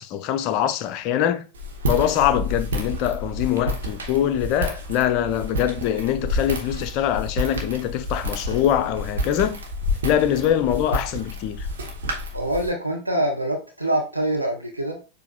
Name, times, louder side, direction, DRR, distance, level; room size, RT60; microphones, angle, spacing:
voice 1, 0.0-1.4 1.9-9.6 10.0-11.7, left 10 dB, 40° left, 0.5 m, -23 dB
Walk footsteps, 1.5-12.7, left 1 dB, 65° right, 0.9 m, -29 dB
voice 2, 12.3-15.0, right 1 dB, 85° right, 0.7 m, -25 dB
6.8 x 2.6 x 2.2 m
figure-of-eight pair, 90°, 0 cm